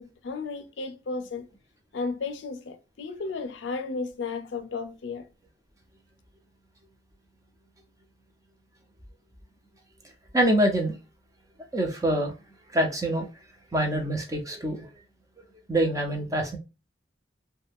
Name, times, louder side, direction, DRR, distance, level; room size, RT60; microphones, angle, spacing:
voice 1, 0.0-1.4 1.9-5.2, left 4 dB, 90° left, 0.5 m, -34 dB
voice 2, 10.3-11.0 11.7-12.3 12.7-13.3 13.7-14.9 15.7-16.6, right 1 dB, 20° right, 0.6 m, -25 dB
2.4 x 2.2 x 3.4 m
head